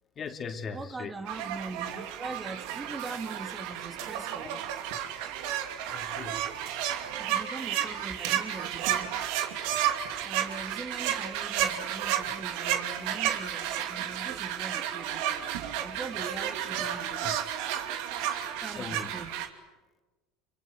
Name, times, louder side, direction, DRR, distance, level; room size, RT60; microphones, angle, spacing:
voice 1, 0.1-1.2 4.4-4.5 5.9-6.5 7.7-7.9 17.2-17.4 18.2-19.2, left 6 dB, 40° left, 5 dB, 3.0 m, -40 dB
voice 2, 0.7-4.6 7.2-9.2 10.2-17.4 18.6-19.3, right 3 dB, 20° right, 6 dB, 3.0 m, -42 dB
sound 1, 1.3-19.5, right 10 dB, 70° right, 2.7 m, -32 dB
28.0 x 23.5 x 8.1 m, 1.2 s
hypercardioid pair, 85°, 0 cm